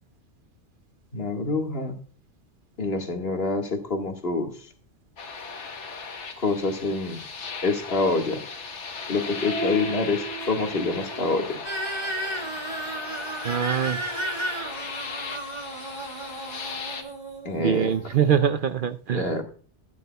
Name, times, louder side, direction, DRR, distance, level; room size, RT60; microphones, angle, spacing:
voice 1, 1.1-2.0 2.8-4.7 6.4-7.2 7.6-8.4 9.1-11.6 17.5-17.9 19.1-19.4, left 3 dB, 55° left, 3 dB, 1.9 m, -26 dB
sound 1, 5.2-17.0, left 2 dB, 80° left, 1.5 m, -36 dB
sound 2, 11.6-18.4, right 1 dB, 40° right, 2.0 m, -34 dB
voice 2, 13.4-14.0 17.6-19.4, right 8 dB, 55° right, 12 dB, 0.7 m, -23 dB
13.5 x 9.8 x 2.3 m, 0.43 s
omnidirectional pair, 1.2 m